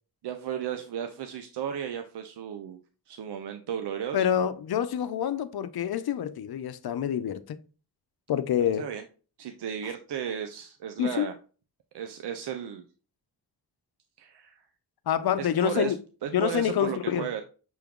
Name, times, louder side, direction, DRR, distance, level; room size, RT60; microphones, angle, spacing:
voice 1, 0.2-2.8 3.1-4.3 8.8-9.0 9.4-11.3 11.9-12.8 14.2-14.6 15.4-15.9 16.2-17.4, right 9 dB, 80° right, 0.6 m, -34 dB
voice 2, 4.1-7.6 8.3-8.9 11.0-11.3 15.1-16.0 16.3-17.3, left 9 dB, 65° left, 0.6 m, -27 dB
6.1 x 2.3 x 3.6 m
cardioid pair, 50°, 41 cm